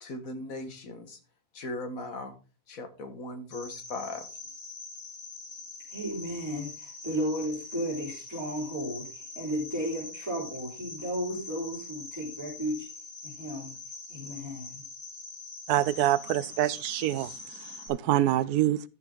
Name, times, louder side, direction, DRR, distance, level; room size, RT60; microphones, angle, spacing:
voice 1, 0.0-1.2 1.5-2.4 2.7-4.3, left 2 dB, 65° left, 1.9 m, -38 dB
Cricket, 3.5-17.9, left 3 dB, 85° left, 3.0 m, -44 dB
voice 2, 5.9-12.9 13.2-13.8 14.1-14.8, equal, 10° right, 4.3 m, -34 dB
voice 3, 15.7-17.3 17.6-18.8, right 13 dB, 85° right, 1.2 m, -26 dB
13.0 x 6.9 x 3.8 m
omnidirectional pair, 1.6 m